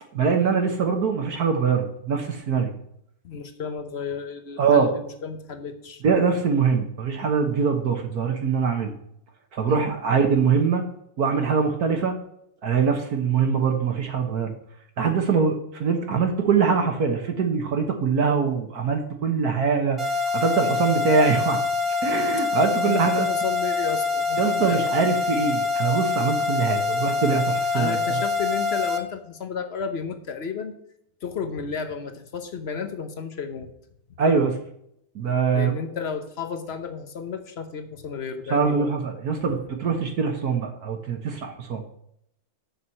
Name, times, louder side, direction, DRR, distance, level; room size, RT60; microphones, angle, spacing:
voice 1, 0.1-2.7 4.6-4.9 6.0-8.9 9.5-10.8 11.2-12.1 12.6-14.5 15.0-20.0 20.3-21.6 21.9-23.3 24.4-28.2 34.2-34.6 35.1-35.7 38.5-41.8, right 5 dB, 55° right, 4 dB, 1.4 m, -23 dB
voice 2, 3.2-6.0 9.7-9.9 22.8-24.9 27.7-30.7 31.2-33.7 35.5-38.9 39.5-39.6, left 6 dB, 55° left, 7 dB, 0.7 m, -32 dB
sound 1, 20.0-29.0, left 4 dB, 20° right, 0.9 m, -25 dB
7.0 x 6.2 x 7.6 m, 0.73 s
omnidirectional pair, 2.3 m